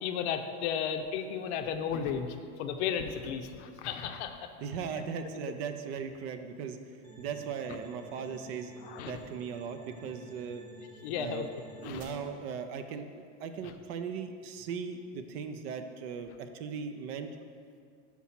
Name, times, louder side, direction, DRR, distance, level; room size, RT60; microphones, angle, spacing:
voice 1, 0.0-2.3 2.6-4.5 8.9-9.2 11.0-11.5 11.8-12.1, left 8 dB, 60° left, 7 dB, 0.6 m, -34 dB
voice 2, 4.6-10.6 11.2-11.5 11.7-17.3, right 6 dB, 55° right, 8 dB, 0.5 m, -38 dB
sound 1, 7.0-12.0, right 1 dB, 20° right, 0.9 m, -52 dB
5.9 x 4.2 x 5.7 m, 2.2 s
supercardioid pair, 160°, 38 cm